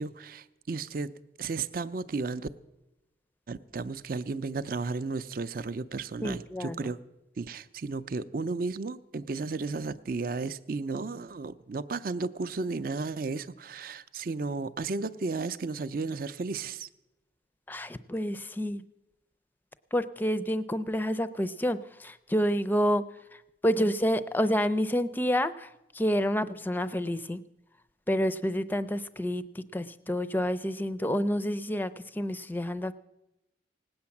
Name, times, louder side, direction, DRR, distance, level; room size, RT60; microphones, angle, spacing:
voice 1, 0.0-2.5 3.5-7.0 7.4-16.9, right 3 dB, 50° right, 13 dB, 0.5 m, -34 dB
voice 2, 6.2-6.8 17.7-18.8 19.9-23.0 23.6-25.7 25.9-27.4 28.1-32.9, equal, 10° left, 15 dB, 0.4 m, -28 dB
18.5 x 8.7 x 7.1 m, 0.94 s
head